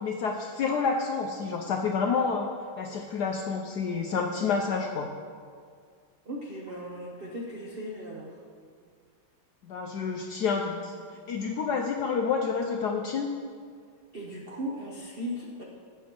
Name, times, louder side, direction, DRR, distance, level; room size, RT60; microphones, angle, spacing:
voice 1, 0.0-2.5 2.8-5.1 9.6-13.3, left 5 dB, 80° left, 2 dB, 0.9 m, -29 dB
voice 2, 6.2-8.4 14.1-15.6, equal, 85° right, -2 dB, 0.5 m, -37 dB
12.0 x 8.2 x 3.0 m, 2.1 s
omnidirectional pair, 2.3 m